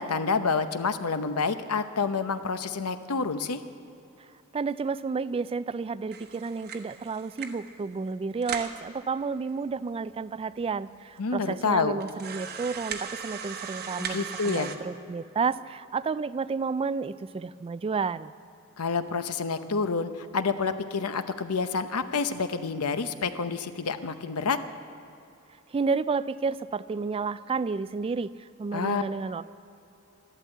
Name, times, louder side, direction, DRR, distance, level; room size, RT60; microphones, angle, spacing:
voice 1, 0.0-3.6 11.2-12.0 14.0-14.7 18.8-24.6 28.7-29.0, left 4 dB, 80° left, 10 dB, 0.8 m, -28 dB
voice 2, 4.5-18.3 25.7-29.4, right 4 dB, 25° right, 16 dB, 0.3 m, -31 dB
sound 1, 6.1-7.7 8.1-8.2 8.4-8.8 9.5-9.6 9.8-9.9 10.6-10.7 11.2-11.3 12.0-14.8, right 6 dB, 45° right, 1.0 m, -38 dB
13.0 x 12.0 x 8.2 m, 2.7 s
head